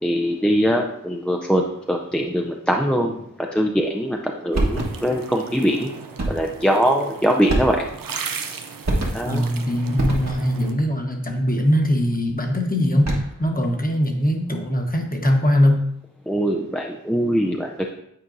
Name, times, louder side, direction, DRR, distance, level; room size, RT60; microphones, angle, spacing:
voice 1, 0.0-1.6 1.9-5.9 6.3-7.9 9.1-9.4 16.3-17.9, equal, 5° left, 1 dB, 0.5 m, -22 dB
sound 1, 4.5-5.2 6.2-6.6 7.5-8.1 8.8-9.5 10.0-10.6 12.9-13.5, right 1 dB, 55° right, 1.4 m, -25 dB
sound 2, 4.5-10.7, right 5 dB, 85° right, 0.6 m, -36 dB
voice 2, 9.2-15.9, equal, 25° left, 2 dB, 1.2 m, -21 dB
8.8 x 4.4 x 2.6 m, 0.75 s
wide cardioid pair, 55°, 33 cm